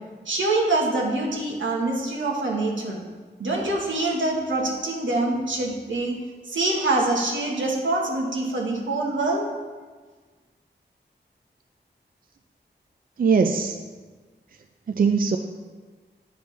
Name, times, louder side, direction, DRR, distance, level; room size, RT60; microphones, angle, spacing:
voice 1, 0.2-3.0 3.4-6.2 6.5-9.5, right 2 dB, 85° right, -1 dB, 1.2 m, -25 dB
voice 2, 13.2-13.8 14.9-15.4, right 5 dB, 50° right, 5 dB, 0.4 m, -20 dB
9.0 x 5.1 x 3.2 m, 1.4 s
cardioid pair, 55°, 19 cm